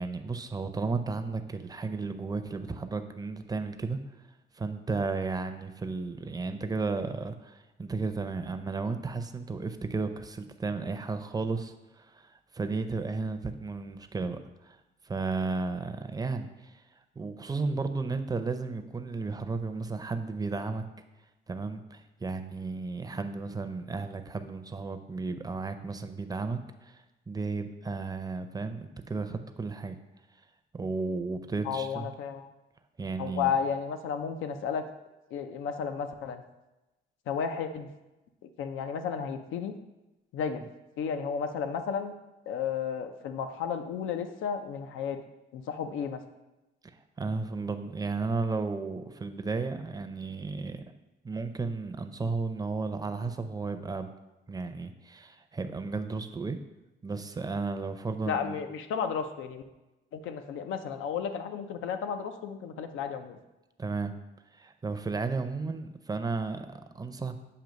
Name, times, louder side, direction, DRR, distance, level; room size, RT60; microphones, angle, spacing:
voice 1, 0.0-4.0 4.6-12.3 12.5-14.4 14.6-14.8 15.1-16.5 17.2-20.8 21.5-30.0 30.7-32.1 33.0-33.5 47.2-50.9 51.2-54.1 54.5-56.6 57.0-58.6 63.8-64.1 64.5-67.4, right 4 dB, 20° right, 8 dB, 0.5 m, -33 dB
voice 2, 31.6-32.5 33.2-34.9 35.3-36.4 37.3-37.9 38.4-39.7 40.3-40.6 41.0-42.1 42.5-45.2 45.5-46.2 58.3-59.6 60.1-63.4, left 7 dB, 85° left, 7 dB, 0.6 m, -33 dB
7.6 x 2.7 x 5.1 m, 1.0 s
cardioid pair, 90°, 20 cm